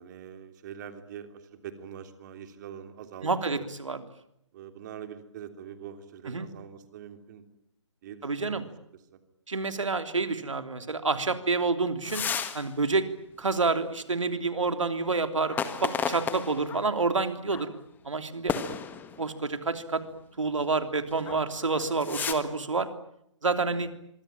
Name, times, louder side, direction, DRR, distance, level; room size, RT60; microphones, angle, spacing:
voice 1, 0.0-3.7 4.5-7.4 8.0-8.7 21.2-21.4 23.7-23.8, right 9 dB, 35° right, 8 dB, 3.3 m, -44 dB
voice 2, 3.2-4.1 6.3-6.5 8.2-8.6 9.5-12.2 12.5-13.1 13.4-17.7 18.0-18.6 19.2-20.0 20.4-22.9 23.4-23.9, right 3 dB, 75° right, 9 dB, 3.3 m, -28 dB
sound 1, 12.0-12.6 13.0-13.1 15.5-16.9 17.5-17.7 18.5-19.3 21.1-21.4 21.7-22.3, left 7 dB, 10° left, 1.8 m, -32 dB
25.5 x 23.5 x 8.9 m, 0.77 s
figure-of-eight pair, 135°, 16 cm